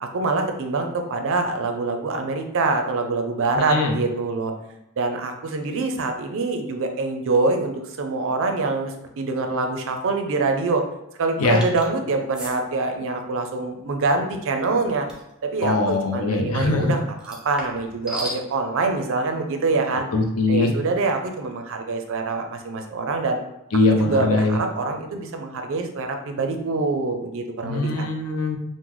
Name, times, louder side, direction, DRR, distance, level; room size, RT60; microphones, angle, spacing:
voice 1, 0.0-4.5 5.0-10.8 11.2-15.1 15.4-20.0 20.5-23.4 23.9-28.1, right 3 dB, 60° right, 5 dB, 0.4 m, -25 dB
voice 2, 3.6-3.9 11.4-11.6 15.6-16.9 20.1-20.7 23.7-24.6 27.6-28.6, left 3 dB, 70° left, 3 dB, 0.5 m, -21 dB
sound 1, 11.6-11.9 12.3-12.6 15.1-15.3 17.2-18.4, equal, 5° right, 0.5 m, -34 dB
3.7 x 2.1 x 3.0 m, 0.90 s
head